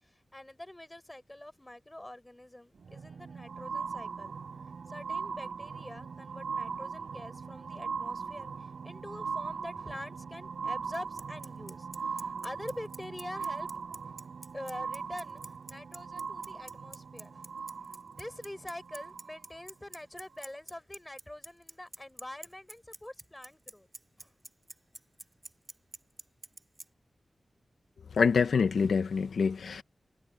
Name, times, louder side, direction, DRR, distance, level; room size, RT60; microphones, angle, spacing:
voice 1, 0.0-4.3 4.9-13.7 14.0-14.2 14.5-15.4 15.7-17.5 18.2-23.9 24.2-24.3, left 1 dB, 15° left, 4.5 m, -45 dB
sound 1, 2.8-19.6 20.4-20.5, right 5 dB, 85° right, 3.5 m, -40 dB
Bicycle, 10.9-26.8, right 2 dB, 30° right, 3.1 m, -45 dB
voice 2, 28.2-29.8, left 5 dB, 90° left, 0.7 m, -26 dB
wide cardioid pair, 100°, 0 cm